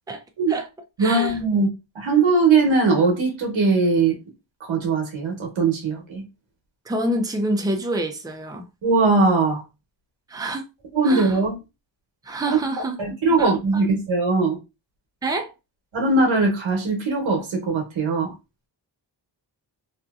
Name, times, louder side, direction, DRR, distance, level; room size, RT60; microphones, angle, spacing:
voice 1, 0.1-0.7 1.0-1.4 6.8-8.7 10.3-10.7 11.0-11.4 12.2-13.8 15.2-15.5, right 1 dB, 10° right, 0.5 m, -27 dB
voice 2, 1.0-1.7 1.9-4.2 4.6-6.2 8.8-9.6 10.9-11.6 13.0-14.6 15.9-18.3, right 3 dB, 85° right, 1.1 m, -20 dB
2.7 x 2.5 x 2.4 m
cardioid pair, 65°, 45 cm